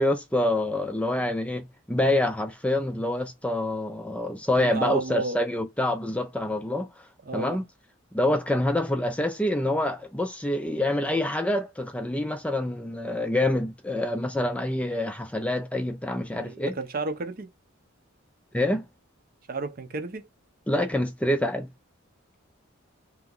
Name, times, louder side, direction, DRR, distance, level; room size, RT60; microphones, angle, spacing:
voice 1, 0.0-6.9 7.3-7.7 8.1-16.8 18.5-18.9 20.7-21.7, left 1 dB, 5° left, 0.4 m, -26 dB
voice 2, 4.6-5.4 7.2-7.6 16.3-17.5 19.5-20.2, right 3 dB, 45° right, 0.6 m, -32 dB
3.4 x 2.9 x 3.8 m
head